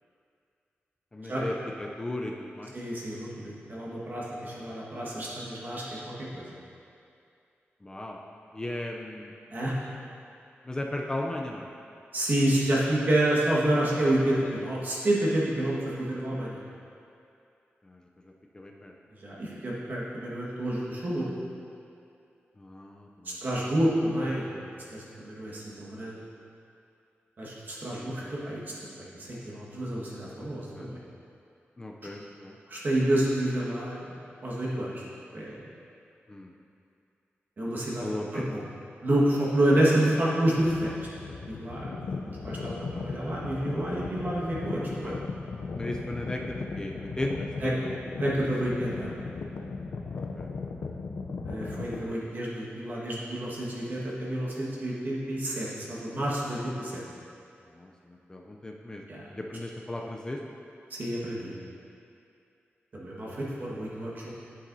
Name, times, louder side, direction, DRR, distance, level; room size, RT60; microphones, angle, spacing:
voice 1, 1.1-2.7 7.8-8.2 8.5-9.3 10.6-11.7 17.8-18.0 18.5-18.9 22.6-23.4 27.9-28.3 30.8-30.9 31.8-32.6 36.3-36.5 38.0-38.5 45.0-45.2 45.8-47.8 50.1-50.5 57.7-59.0 59.4-60.4, left 1 dB, 20° left, 0 dB, 0.4 m, -36 dB
voice 2, 2.7-5.8 6.3-6.4 9.5-9.8 12.1-16.6 19.2-21.4 23.2-26.2 27.4-28.9 29.2-31.0 32.7-34.2 34.4-35.0 35.3-35.5 37.6-38.1 38.3-38.6 39.0-41.0 41.3-42.0 42.2-45.1 47.6-47.7 48.2-49.1 51.4-57.0 59.1-59.3 60.9-61.5 62.9-64.3, right 1 dB, 45° right, -6 dB, 1.5 m, -29 dB
sound 1, 40.6-52.0, left 4 dB, 70° left, 0.5 m, -37 dB
10.0 x 8.4 x 2.7 m, 2.5 s
wide cardioid pair, 175°, 4 cm